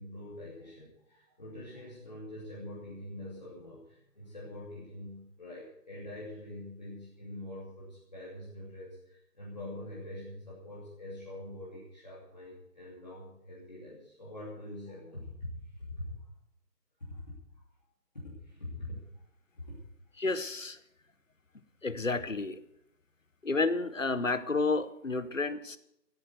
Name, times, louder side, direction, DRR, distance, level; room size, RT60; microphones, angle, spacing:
voice 1, 0.0-15.5 15.8-16.1 17.0-17.6 18.1-19.0 19.6-19.8, left 1 dB, 25° left, -7 dB, 2.8 m, -44 dB
voice 2, 20.2-20.8 21.8-22.6 23.4-25.8, left 3 dB, 50° left, 14 dB, 1.0 m, -30 dB
15.0 x 9.0 x 7.9 m, 0.80 s
figure-of-eight pair, 180°, 49 cm